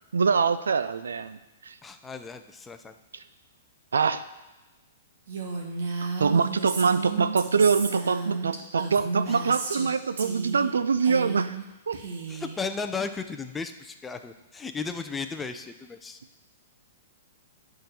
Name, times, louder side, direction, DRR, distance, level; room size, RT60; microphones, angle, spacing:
voice 1, 0.1-1.4 1.6-1.7 3.9-4.2 6.2-11.6 11.9-12.0, right 5 dB, 80° right, 13 dB, 0.4 m, -24 dB
voice 2, 1.8-3.0 9.3-9.4 12.3-16.2, left 5 dB, 15° left, 7 dB, 0.6 m, -35 dB
Female speech woman speaking, 5.3-9.9 10.2-10.7 11.0-11.6 11.9-12.6, right 3 dB, 60° right, 1.6 m, -33 dB
9.0 x 3.9 x 6.8 m, 1.1 s
hypercardioid pair, 115°, 0 cm